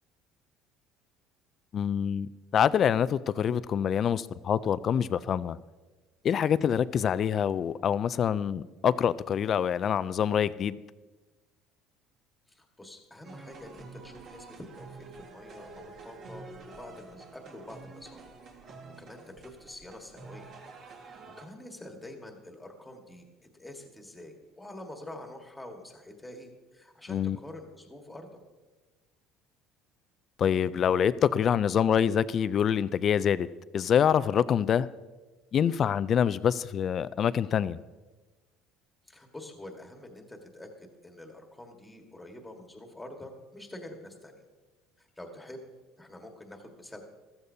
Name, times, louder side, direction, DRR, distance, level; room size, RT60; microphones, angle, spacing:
voice 1, 1.7-5.6 6.2-10.8 27.1-27.4 30.4-33.5 33.7-34.9 35.5-37.8, left 8 dB, 35° left, 0.3 m, -26 dB
voice 2, 12.5-18.2 19.0-20.5 21.0-23.3 23.5-28.4 39.0-44.4 45.0-45.6 46.0-47.0, left 1 dB, 5° left, 1.5 m, -46 dB
sound 1, 13.2-21.5, right 3 dB, 45° right, 1.7 m, -48 dB
14.5 x 14.0 x 2.7 m
cardioid pair, 150°, 0 cm